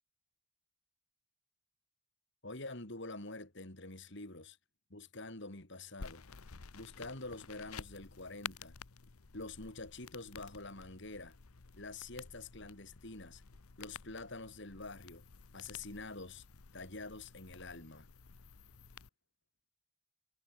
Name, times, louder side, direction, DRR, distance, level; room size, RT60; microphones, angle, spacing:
voice 1, 2.4-4.6 4.9-6.2 6.7-8.8 9.3-11.4 11.8-13.4 13.8-15.2 15.5-16.4 16.7-18.1, left 2 dB, 55° left, 3.4 m, -46 dB
sound 1, 6.0-19.1, left 6 dB, 85° left, 1.0 m, -52 dB
head